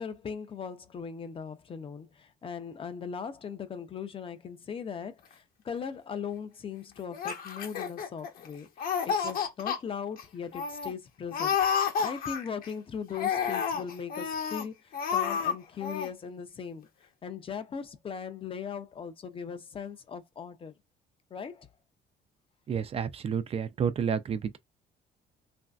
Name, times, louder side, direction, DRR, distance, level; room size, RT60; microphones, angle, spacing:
voice 1, 0.0-8.7 9.0-11.6 12.0-14.8 15.1-16.9 17.2-20.7 21.3-21.7, left 7 dB, 30° left, 0.5 m, -39 dB
Laughter, 7.1-8.5 8.8-9.8 10.2-10.3 10.5-10.9 11.3-12.7 13.1-14.6 14.9-15.5 15.8-16.1, left 7 dB, 60° left, 0.9 m, -30 dB
voice 2, 22.7-24.6, right 7 dB, 35° right, 0.4 m, -30 dB
3.1 x 2.6 x 2.3 m
cardioid pair, 110°, 17 cm